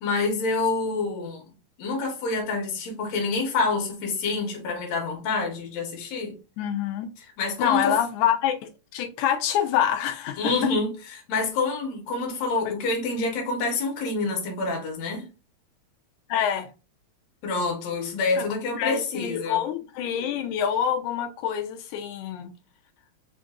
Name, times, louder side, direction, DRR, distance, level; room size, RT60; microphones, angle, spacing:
voice 1, 0.0-1.5 1.8-6.4 7.2-7.9 10.4-15.3 17.4-19.6, left 3 dB, 65° left, 2.3 m, -27 dB
voice 2, 6.6-7.1 7.6-10.5 12.6-12.7 16.3-16.7 18.4-18.5 18.8-22.5, left 9 dB, 85° left, 2.1 m, -26 dB
4.9 x 2.6 x 3.6 m
omnidirectional pair, 3.4 m